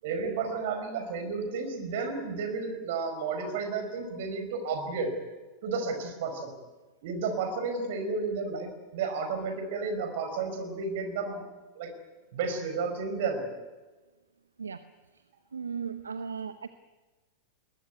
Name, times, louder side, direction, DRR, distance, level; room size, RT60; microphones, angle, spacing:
voice 1, 0.0-5.1 5.6-6.5 7.0-11.4 11.8-11.9 12.3-13.5, right 4 dB, 55° right, 7 dB, 5.2 m, -32 dB
voice 2, 14.6-14.9 15.5-16.7, right 6 dB, 75° right, 12 dB, 0.9 m, -36 dB
22.0 x 19.5 x 9.4 m, 1.2 s
figure-of-eight pair, 90°, 0 cm